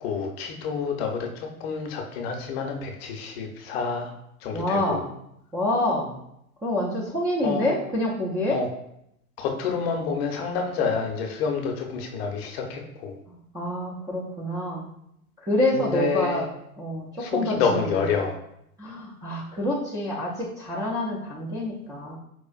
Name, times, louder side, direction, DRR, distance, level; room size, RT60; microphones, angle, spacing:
voice 1, 0.0-4.1 4.4-5.0 7.4-7.7 8.5-8.7 9.4-13.1 15.7-16.4 17.2-18.4, left 5 dB, 45° left, 3 dB, 0.7 m, -28 dB
voice 2, 4.5-5.1 5.5-6.2 6.6-8.6 13.3-14.9 15.4-16.4 16.8-18.0 18.8-22.2, left 1 dB, 10° right, -7 dB, 0.4 m, -27 dB
4.3 x 2.4 x 2.3 m, 0.76 s
figure-of-eight pair, 95°, 44 cm